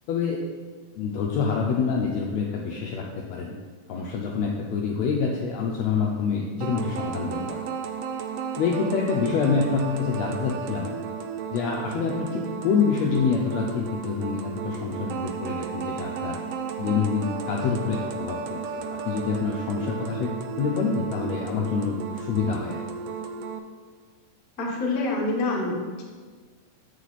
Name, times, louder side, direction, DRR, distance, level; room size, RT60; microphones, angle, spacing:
voice 1, 0.1-0.4 1.0-3.0 3.3-3.5 3.9-7.6 8.6-10.9 11.5-16.4 16.8-22.8, left 5 dB, 90° left, -1 dB, 1.5 m, -26 dB
sound 1, 6.6-23.6, right 6 dB, 80° right, 2.0 m, -34 dB
voice 2, 24.6-25.8, left 2 dB, 70° left, -3 dB, 0.8 m, -26 dB
8.3 x 4.9 x 4.0 m, 1.5 s
omnidirectional pair, 3.7 m